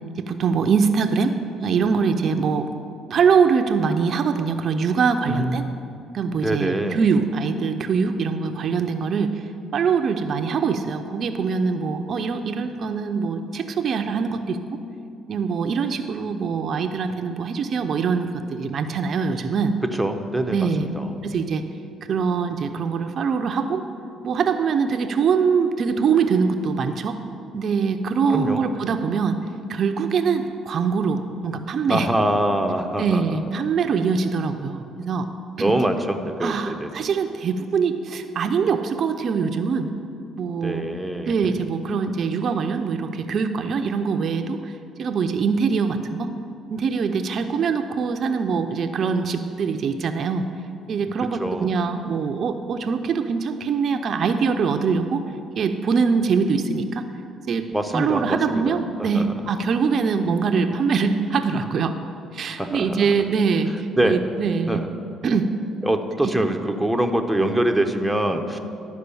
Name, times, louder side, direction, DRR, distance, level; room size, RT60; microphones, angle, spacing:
voice 1, 0.2-1.4 1.6-2.7 3.1-5.7 6.1-9.3 9.7-14.6 15.3-19.7 20.5-20.9 21.2-21.6 22.1-23.8 24.2-27.2 27.5-29.4 29.7-32.1 33.0-35.3 35.6-35.7 36.4-39.9 40.3-40.9 41.3-44.7 45.0-46.3 46.7-50.4 50.9-55.2 55.6-57.0 57.5-57.6 57.9-61.9 62.3-64.8 65.2-65.5, right 5 dB, 55° right, 7 dB, 0.5 m, -23 dB
voice 2, 5.3-5.8 6.3-7.0 20.0-21.4 28.3-28.6 31.9-33.2 35.6-36.9 40.6-41.3 51.4-51.7 57.7-59.2 62.6-63.1 64.0-64.2 64.7-64.9 65.8-68.6, right 1 dB, 5° right, 4 dB, 0.7 m, -24 dB
11.5 x 4.7 x 6.9 m, 2.6 s
cardioid pair, 95°, 0 cm